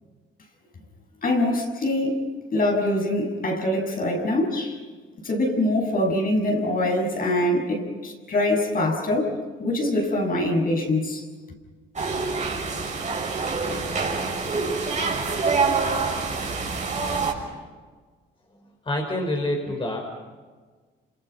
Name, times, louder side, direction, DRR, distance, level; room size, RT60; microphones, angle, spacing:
voice 1, 1.2-2.3 2.5-4.8 5.2-11.2, left 1 dB, 45° left, 2 dB, 7.0 m, -24 dB
sound 1, 12.0-17.3, right 4 dB, 35° right, 6.6 m, -26 dB
voice 2, 18.8-20.0, left 1 dB, 25° left, 1 dB, 5.3 m, -26 dB
29.5 x 27.5 x 5.8 m, 1.4 s
cardioid pair, 90°, 20 cm